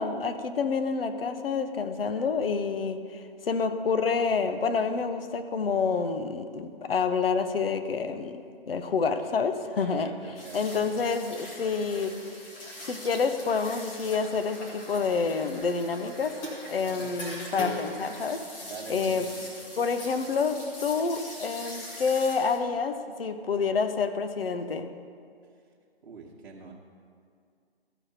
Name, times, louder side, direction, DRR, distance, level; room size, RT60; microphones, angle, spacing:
voice 1, 0.0-10.1 10.5-12.2 12.8-16.4 16.7-18.4 18.9-19.3 19.8-24.9, left 5 dB, 65° left, 9 dB, 0.8 m, -28 dB
voice 2, 9.7-11.0 16.8-17.2 18.6-19.4 26.0-26.7, right 4 dB, 60° right, -4 dB, 1.2 m, -44 dB
sound 1, 10.3-22.6, left 1 dB, 10° left, 0.5 m, -41 dB
14.0 x 5.1 x 4.3 m, 2.2 s
figure-of-eight pair, 140°, 31 cm